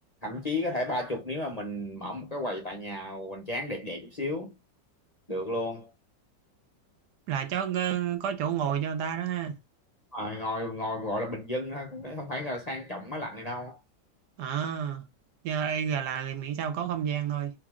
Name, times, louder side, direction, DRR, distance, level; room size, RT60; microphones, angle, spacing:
voice 1, 0.2-4.5 5.3-5.9 10.1-13.8, left 1 dB, 30° left, 0.8 m, -33 dB
voice 2, 7.3-9.6 14.4-15.0 15.4-17.5, right 8 dB, 75° right, 1.3 m, -30 dB
3.6 x 3.0 x 3.5 m
omnidirectional pair, 1.9 m